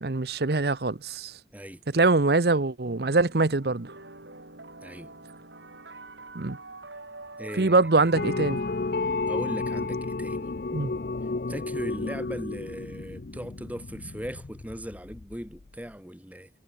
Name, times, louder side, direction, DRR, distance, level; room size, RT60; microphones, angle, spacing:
voice 1, 0.0-1.3 1.9-3.9 6.3-6.6 7.6-8.6 10.7-10.9, right 3 dB, 60° right, 0.9 m, -23 dB
voice 2, 1.5-1.8 4.8-5.1 7.4-8.1 9.3-10.5 11.5-16.5, equal, 10° right, 2.6 m, -38 dB
sound 1, 2.8-9.9, right 3 dB, 80° right, 8.0 m, -45 dB
sound 2, 8.1-15.7, left 3 dB, 55° left, 0.6 m, -32 dB
head